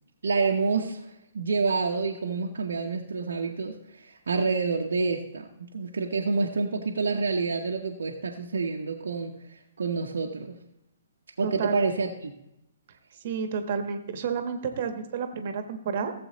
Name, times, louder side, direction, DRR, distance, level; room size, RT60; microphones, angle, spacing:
voice 1, 0.2-9.3 9.8-10.6 11.4-12.3, right 4 dB, 65° right, 1 dB, 0.9 m, -28 dB
voice 2, 11.4-11.8 13.2-16.1, right 6 dB, 45° right, 7 dB, 1.2 m, -30 dB
16.5 x 7.7 x 3.0 m, 0.85 s
figure-of-eight pair, 120°, 0 cm